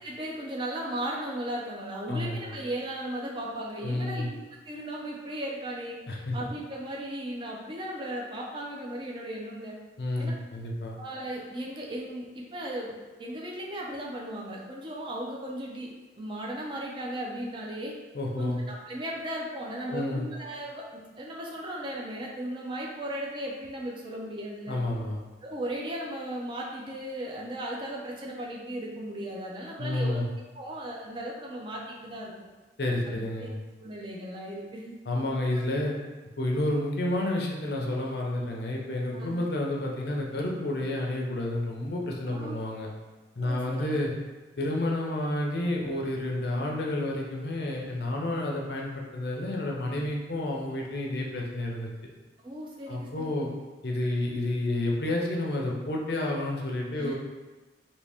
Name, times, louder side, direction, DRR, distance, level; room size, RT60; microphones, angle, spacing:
voice 1, 0.0-9.7 10.2-10.3 11.0-17.9 18.4-24.8 25.4-30.2 30.6-32.3 33.1-33.5 33.8-35.0 39.1-39.4 42.2-42.6 43.4-44.0 52.4-53.5 57.0-57.1, right 1 dB, 25° right, -2 dB, 0.4 m, -36 dB
voice 2, 2.1-2.5 3.8-4.3 6.1-6.4 10.0-10.9 18.1-18.6 19.9-20.3 24.7-25.2 29.8-30.3 32.8-33.6 35.1-35.9 36.4-42.9 43.4-44.1 44.6-51.9 52.9-53.5 53.8-57.1, left 1 dB, 60° left, -1 dB, 0.5 m, -30 dB
2.8 x 2.7 x 3.3 m, 1.2 s
head